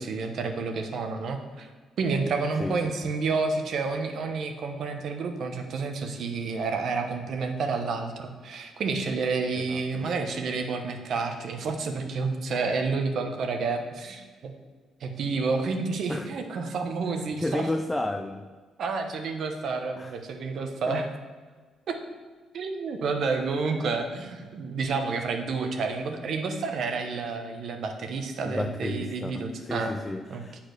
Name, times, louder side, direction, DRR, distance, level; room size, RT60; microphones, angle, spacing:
voice 1, 0.0-1.7 2.0-14.5 15.0-17.7 18.8-21.1 21.9-22.0 22.5-29.9 30.3-30.4, right 4 dB, 65° right, 5 dB, 1.0 m, -30 dB
voice 2, 2.6-2.9 9.5-10.1 16.1-16.3 17.4-18.4 20.0-20.2 20.9-21.0 28.4-30.6, left 1 dB, 10° left, 6 dB, 0.4 m, -32 dB
7.9 x 4.4 x 6.6 m, 1.5 s
cardioid pair, 90°, 0 cm